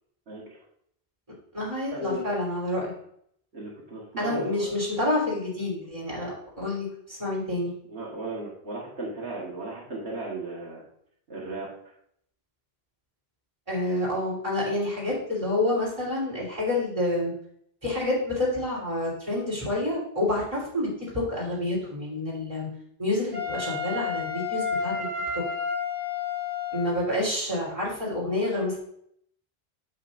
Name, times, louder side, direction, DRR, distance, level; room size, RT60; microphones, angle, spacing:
voice 1, 0.3-0.6 1.9-2.2 3.5-4.8 7.9-10.8 11.3-11.7, right 2 dB, 80° right, -4 dB, 1.8 m, -35 dB
voice 2, 1.5-2.9 4.2-7.7 13.7-17.3 17.8-20.9 21.1-22.7 23.0-25.1 25.3-25.4 26.7-28.8, left 1 dB, 30° right, -5 dB, 3.5 m, -28 dB
Wind instrument woodwind instrument, 23.3-27.1, left 5 dB, 55° right, 2.0 m, -31 dB
8.8 x 7.6 x 2.6 m, 0.68 s
omnidirectional pair, 1.1 m